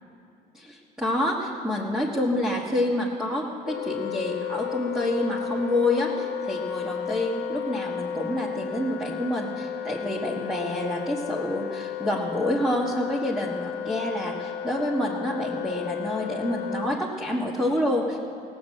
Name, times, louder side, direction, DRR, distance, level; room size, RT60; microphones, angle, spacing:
voice 1, 0.5-18.2, left 1 dB, 5° right, -4 dB, 1.5 m, -28 dB
Wind instrument woodwind instrument, 3.6-17.0, left 9 dB, 80° left, 1.0 m, -33 dB
17.0 x 7.9 x 7.5 m, 2.7 s
cardioid pair, 110°, 17 cm